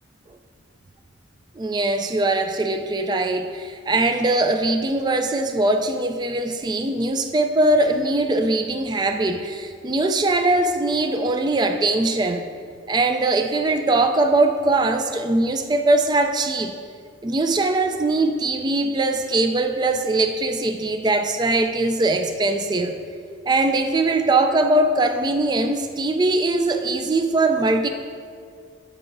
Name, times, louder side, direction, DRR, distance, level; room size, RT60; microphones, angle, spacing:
voice 1, 1.6-12.4 12.9-16.7 17.2-23.0 23.5-27.9, right 2 dB, 20° right, 6 dB, 0.3 m, -21 dB
12.5 x 5.9 x 2.6 m, 2.2 s
head